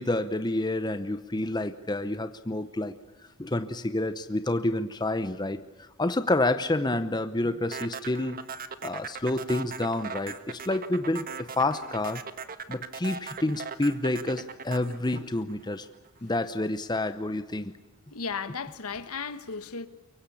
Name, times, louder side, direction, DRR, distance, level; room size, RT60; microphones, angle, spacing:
voice 1, 0.0-3.0 3.4-8.4 8.8-12.3 12.7-15.9 16.2-17.7, left 2 dB, 20° left, 0.8 m, -29 dB
sound 1, 7.7-16.1, right 5 dB, 40° right, 1.3 m, -39 dB
voice 2, 18.1-19.9, left 5 dB, 75° left, 1.2 m, -35 dB
24.0 x 23.5 x 8.5 m
head